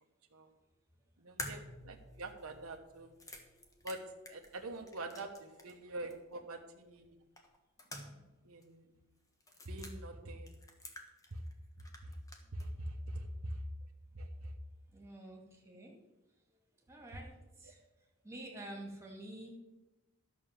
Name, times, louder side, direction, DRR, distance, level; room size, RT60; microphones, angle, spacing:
voice 1, 1.2-3.1 3.8-4.0 4.3-7.2 8.4-8.9 9.6-10.6 11.3-11.4 12.0-12.2 12.5-13.6 14.1-14.5, right 1 dB, 75° right, 3 dB, 1.2 m, -44 dB
sound 1, 1.4-5.8 6.1-6.2 7.4-8.4 8.6-8.7 9.4-9.9 10.5-11.5 11.8-12.7, left 1 dB, 15° left, 1.4 m, -49 dB
voice 2, 14.9-15.9 16.9-17.8 18.2-19.5, right 1 dB, 15° right, 0 dB, 2.3 m, -48 dB
12.0 x 6.3 x 7.5 m, 1.0 s
head